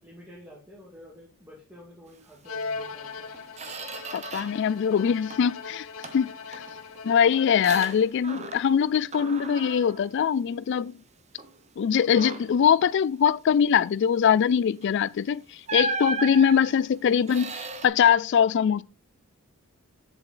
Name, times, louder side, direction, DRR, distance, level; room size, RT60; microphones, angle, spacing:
voice 1, 0.0-3.3 5.0-5.2, equal, 10° right, 2.2 m, -49 dB
Bowed string instrument, 2.4-8.2, left 4 dB, 75° left, 0.8 m, -39 dB
Squeak, 2.8-2.9 3.3-4.7 5.0-5.6 6.0-8.8 9.1-11.0 11.4-11.6 12.0-12.7 14.8-15.0 15.7-17.9, right 4 dB, 30° right, 0.9 m, -36 dB
voice 2, 4.1-5.9 6.1-6.6 7.0-10.9 11.8-18.8, left 7 dB, 55° left, 0.3 m, -22 dB
8.1 x 7.0 x 3.9 m
head